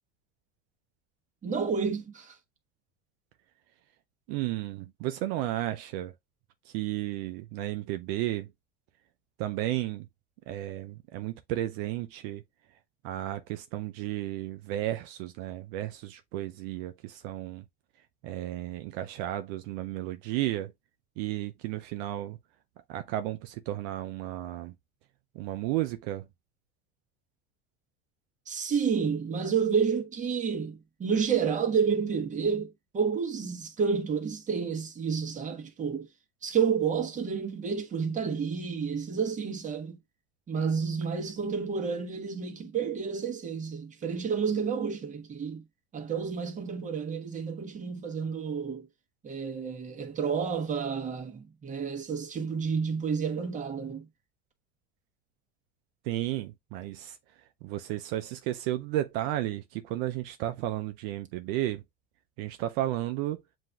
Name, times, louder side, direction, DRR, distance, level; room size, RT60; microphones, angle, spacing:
voice 1, 1.4-2.4 28.5-36.1 36.4-40.0 40.5-45.6 45.9-48.9 49.2-54.1, right 6 dB, 25° right, 1.2 m, -30 dB
voice 2, 4.3-6.1 6.7-8.5 9.4-10.1 10.5-12.4 13.0-17.6 18.2-20.7 21.2-22.4 22.9-24.7 25.4-26.2 56.1-57.2 57.6-61.8 62.4-63.4, right 14 dB, 70° right, 0.5 m, -33 dB
7.5 x 2.6 x 2.3 m
supercardioid pair, 115°, 31 cm